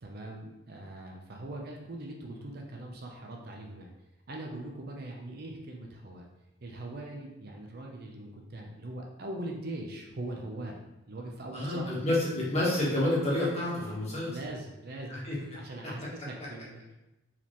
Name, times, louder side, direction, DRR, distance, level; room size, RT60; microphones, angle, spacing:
voice 1, 0.0-3.9 4.3-6.3 6.6-10.8 11.1-11.8 13.8-14.0 14.3-16.9, right 1 dB, 45° right, 0 dB, 0.6 m, -41 dB
voice 2, 11.5-14.3 15.1-15.4, left 1 dB, 30° left, -6 dB, 1.3 m, -29 dB
4.7 x 3.6 x 3.0 m, 0.96 s
head